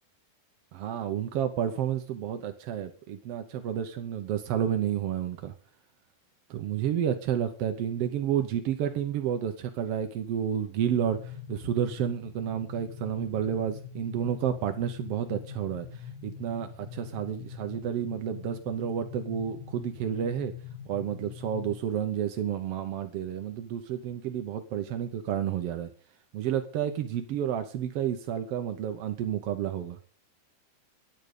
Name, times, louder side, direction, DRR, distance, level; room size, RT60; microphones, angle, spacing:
voice 1, 0.7-5.5 6.5-20.5 20.9-25.9 26.3-30.0, right 9 dB, 75° right, 7 dB, 1.4 m, -30 dB
sound 1, 10.9-21.7, left 8 dB, 35° left, 2.7 m, -43 dB
10.5 x 9.0 x 6.6 m, 0.42 s
omnidirectional pair, 3.9 m